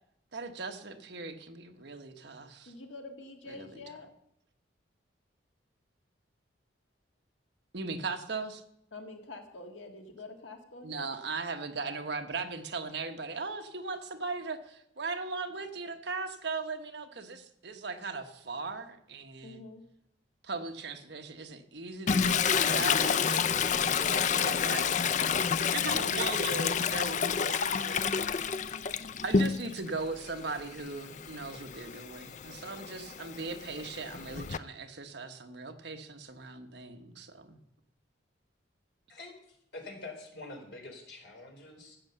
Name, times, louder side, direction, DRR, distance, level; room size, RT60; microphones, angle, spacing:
voice 1, 0.3-2.7 3.5-3.7 7.7-8.6 10.8-19.6 20.4-24.9 25.7-28.0 29.2-37.6, right 3 dB, 65° right, 6 dB, 1.3 m, -38 dB
voice 2, 2.6-4.1 8.9-11.1 19.4-19.8, left 2 dB, 80° left, 4 dB, 1.8 m, -47 dB
Toilet flush, 22.1-29.9 30.3-34.6, left 6 dB, 40° left, 0.4 m, -29 dB
voice 3, 39.1-42.0, left 2 dB, 60° left, 2 dB, 3.8 m, -46 dB
14.0 x 8.5 x 6.7 m, 0.75 s
head